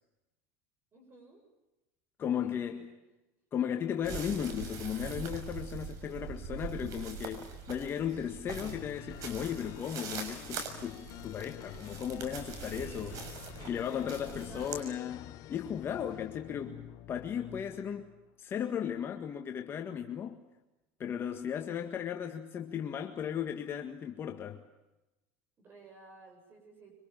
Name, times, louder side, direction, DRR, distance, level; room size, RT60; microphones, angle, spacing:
voice 1, 0.9-1.4 2.4-2.8 12.6-15.0 25.6-26.9, right 2 dB, 30° right, 7.6 m, -54 dB
voice 2, 2.2-3.0 3.5-13.2 13.6-16.8 17.1-18.1 18.4-20.4 21.0-24.6, left 9 dB, 35° left, 1.8 m, -36 dB
sound 1, 4.0-14.8, right 6 dB, 50° right, 6.3 m, -43 dB
sound 2, 8.5-18.3, left 15 dB, 50° left, 1.1 m, -49 dB
26.0 x 25.5 x 7.4 m
supercardioid pair, 130°, 7 cm